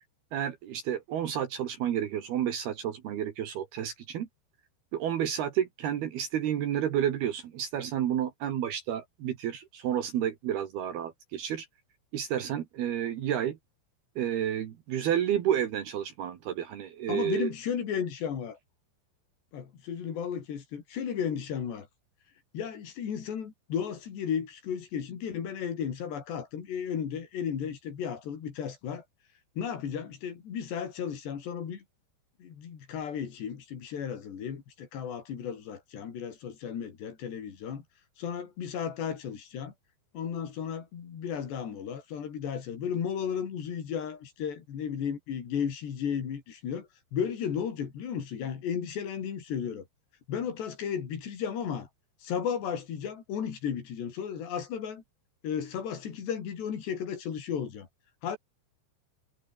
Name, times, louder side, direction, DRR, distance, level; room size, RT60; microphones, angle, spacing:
voice 1, 0.3-4.3 4.9-11.7 12.1-13.6 14.2-17.5, right 10 dB, 65° right, 3.5 m, -30 dB
voice 2, 17.1-18.6 19.5-21.9 22.5-29.0 29.6-31.8 32.4-37.8 38.2-39.7 40.1-49.9 50.3-51.9 52.2-55.0 55.4-57.9 58.2-58.4, left 8 dB, 70° left, 5.6 m, -34 dB
omnidirectional pair, 5.2 m